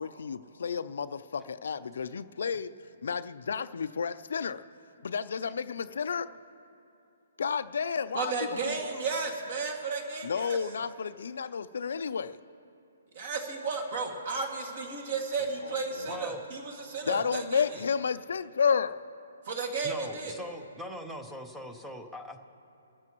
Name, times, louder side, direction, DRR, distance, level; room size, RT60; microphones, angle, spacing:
voice 1, 0.0-4.7 5.0-6.3 7.4-8.3 8.6-8.9 10.2-12.4 15.6-16.2 17.0-19.0, left 6 dB, 65° left, 12 dB, 0.5 m, -31 dB
voice 2, 8.1-10.6 13.1-17.6 19.5-20.3, right 4 dB, 40° right, 2 dB, 2.2 m, -33 dB
voice 3, 16.1-16.4 19.8-22.4, equal, 5° right, 5 dB, 0.7 m, -41 dB
24.0 x 14.0 x 3.1 m, 2.7 s
hypercardioid pair, 170°, 0 cm